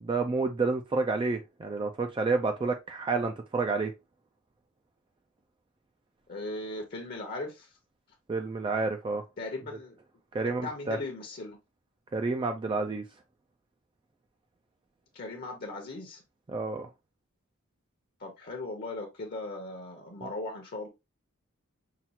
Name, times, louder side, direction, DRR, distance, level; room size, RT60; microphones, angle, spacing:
voice 1, 0.0-3.9 8.3-9.2 10.3-11.0 12.1-13.0 16.5-16.9 20.2-20.3, right 3 dB, 25° right, 0.3 m, -29 dB
voice 2, 6.3-7.7 9.4-10.0 10.4-11.6 15.1-16.2 18.2-20.9, left 2 dB, 45° left, 0.8 m, -38 dB
5.7 x 2.4 x 2.8 m
head